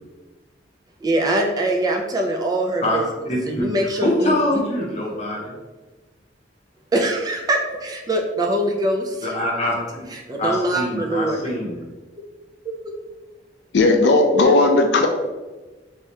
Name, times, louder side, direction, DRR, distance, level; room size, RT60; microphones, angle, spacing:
voice 1, 1.0-3.0 3.5-4.6 6.9-9.3 10.1-11.6 12.8-12.9, right 1 dB, 20° right, 1 dB, 0.3 m, -23 dB
voice 2, 3.2-5.5 9.2-9.7 10.4-11.8, left 1 dB, 40° left, -2 dB, 0.8 m, -24 dB
voice 3, 13.7-15.1, left 2 dB, 65° left, 4 dB, 0.4 m, -15 dB
3.4 x 2.8 x 3.2 m, 1.2 s
head